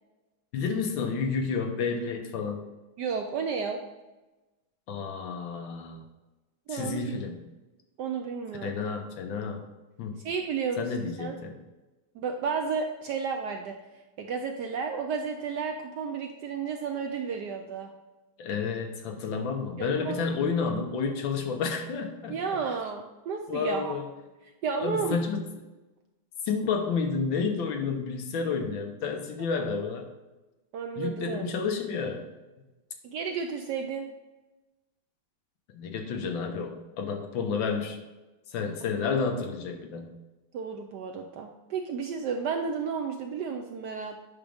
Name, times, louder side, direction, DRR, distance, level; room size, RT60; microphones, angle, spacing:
voice 1, 0.5-2.6 4.9-6.0 6.7-7.4 8.6-9.6 10.0-10.2 10.8-11.6 18.4-22.6 23.5-24.1 24.8-25.4 26.4-30.1 31.0-32.3 35.7-38.0 38.5-40.1, left 5 dB, 70° left, 5 dB, 1.5 m, -30 dB
voice 2, 3.0-3.8 6.7-7.2 8.0-8.8 10.2-11.4 12.1-13.8 14.2-17.9 19.8-20.2 22.3-24.0 24.6-25.2 29.6-29.7 30.7-31.4 33.0-34.1 40.5-44.2, right 6 dB, 75° right, 3 dB, 1.0 m, -32 dB
8.8 x 6.0 x 3.5 m, 1.1 s
omnidirectional pair, 2.3 m